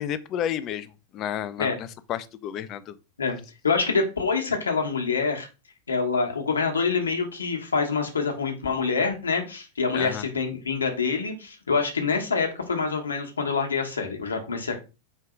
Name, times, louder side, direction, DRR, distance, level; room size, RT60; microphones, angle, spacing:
voice 1, 0.0-2.9 9.9-10.2, left 10 dB, 35° left, 0.4 m, -31 dB
voice 2, 3.6-5.5 5.9-14.7, left 4 dB, 75° left, 1.0 m, -26 dB
4.5 x 2.8 x 3.6 m
figure-of-eight pair, 90°, 0 cm